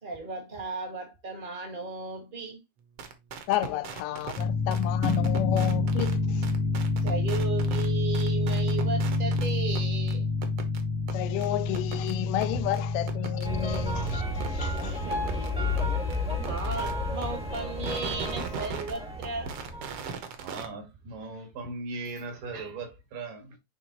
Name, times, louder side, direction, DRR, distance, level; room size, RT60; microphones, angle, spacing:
voice 1, 0.0-2.6 7.0-10.3 12.5-12.6 14.8-15.4 16.4-19.5, right 3 dB, 40° right, 0.7 m, -35 dB
sound 1, 3.0-4.4 4.7-6.1 6.4-7.9 8.1-9.5 9.7-9.8 10.1-10.2 10.4-10.8 11.1-11.2 11.4-11.5 11.7-12.1 12.4-12.5 12.7-12.8 13.1-13.5 13.7-13.8 14.1-14.2 14.4-14.5 14.8-14.9 15.1-15.5 15.8-15.9 16.1-16.2 16.4-16.9 17.2-17.3 17.5-19.0 19.2-20.7, right 6 dB, 65° right, 1.5 m, -38 dB
voice 2, 3.5-6.5 11.1-14.2 14.5-15.0, left 15 dB, 90° left, 2.2 m, -31 dB
sound 2, 4.4-14.2, left 3 dB, 65° left, 1.5 m, -27 dB
sound 3, 13.4-20.1, left 1 dB, 10° right, 0.3 m, -32 dB
voice 3, 20.4-23.6, right 3 dB, 80° right, 3.3 m, -38 dB
9.1 x 3.5 x 3.0 m
omnidirectional pair, 3.8 m